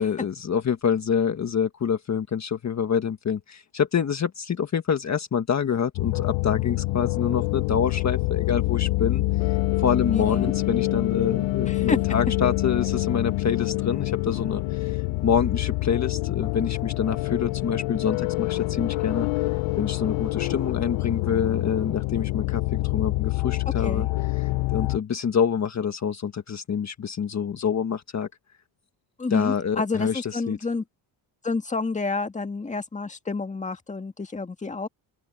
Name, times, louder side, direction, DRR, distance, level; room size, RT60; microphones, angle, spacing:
voice 1, 0.0-15.0 15.2-19.3 19.8-24.1 24.4-28.3 29.3-30.6, left 7 dB, 35° left, 1.5 m, -26 dB
sound 1, 5.9-25.0, left 20 dB, 75° left, 0.6 m, -26 dB
voice 2, 10.1-10.5 11.7-12.0 23.8-24.1 29.2-30.8 31.4-34.9, left 3 dB, 15° left, 1.9 m, -29 dB
open air
cardioid pair, 130°, 46 cm